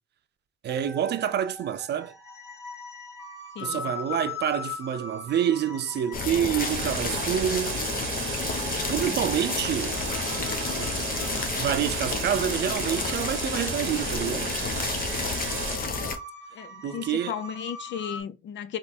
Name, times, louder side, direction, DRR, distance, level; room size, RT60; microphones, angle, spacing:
voice 1, 0.6-2.1 3.6-7.9 8.9-10.0 10.7-11.0 11.6-14.5 16.8-17.4, right 10 dB, 60° right, 0.5 m, -27 dB
sound 1, 0.7-18.2, left 3 dB, 15° left, 1.7 m, -42 dB
sound 2, 6.1-16.2, left 4 dB, 45° left, 0.9 m, -30 dB
sound 3, 6.6-15.8, right 8 dB, 90° right, 0.8 m, -35 dB
voice 2, 16.5-18.8, left 9 dB, 65° left, 0.7 m, -35 dB
3.5 x 3.0 x 4.2 m
cardioid pair, 90°, 20 cm